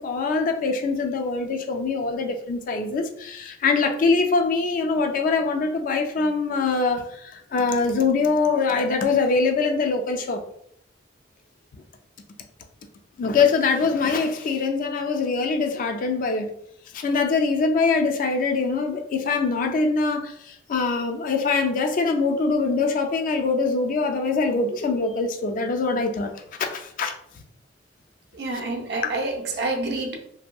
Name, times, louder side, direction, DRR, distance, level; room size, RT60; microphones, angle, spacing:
voice 1, 0.0-10.4 13.2-16.5 16.9-26.3 26.7-27.1, left 4 dB, 45° left, 4 dB, 0.3 m, -23 dB
voice 2, 28.3-30.2, right 2 dB, 65° right, 1 dB, 0.5 m, -28 dB
2.7 x 2.6 x 2.2 m, 0.71 s
head